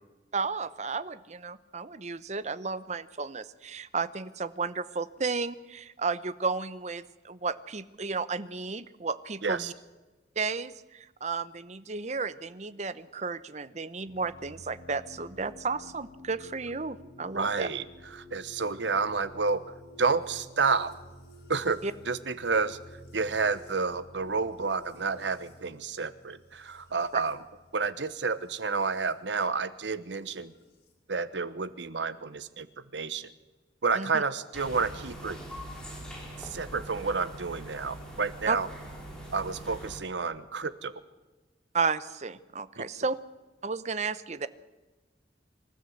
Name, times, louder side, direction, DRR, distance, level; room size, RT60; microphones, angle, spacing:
voice 1, 0.3-9.7 10.4-17.7 21.8-21.9 27.1-27.2 33.9-34.2 38.5-38.6 41.7-43.2 43.6-44.5, right 4 dB, 40° right, 15 dB, 0.8 m, -33 dB
voice 2, 9.4-9.7 17.3-17.8 18.1-19.6 20.0-20.9 21.5-21.8 22.1-22.8 23.1-27.4 27.7-30.5 31.1-33.3 33.8-35.4 36.4-38.7 39.3-41.0 42.8-42.9, right 4 dB, 90° right, 14 dB, 1.1 m, -30 dB
sound 1, 14.1-29.1 30.3-30.9, equal, 65° left, 4.5 m, -52 dB
sound 2, 34.5-40.0, right 1 dB, 5° left, 4.5 m, -43 dB
25.5 x 13.5 x 8.0 m, 1.2 s
head